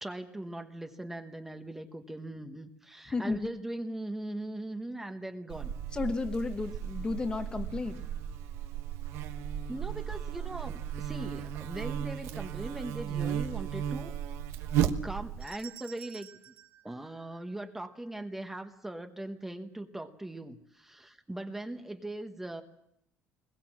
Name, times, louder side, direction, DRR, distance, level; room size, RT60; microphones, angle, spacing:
voice 1, 0.0-5.7 9.7-14.1 14.9-16.3 16.8-22.6, right 1 dB, 5° right, 6 dB, 1.1 m, -40 dB
Buzz, 5.5-15.5, right 9 dB, 70° right, 1.2 m, -35 dB
voice 2, 5.9-8.0, left 3 dB, 20° left, 8 dB, 1.1 m, -33 dB
sound 1, 15.4-17.8, right 11 dB, 45° right, 1.9 m, -51 dB
21.5 x 21.0 x 7.4 m, 0.77 s
cardioid pair, 155°, 5 cm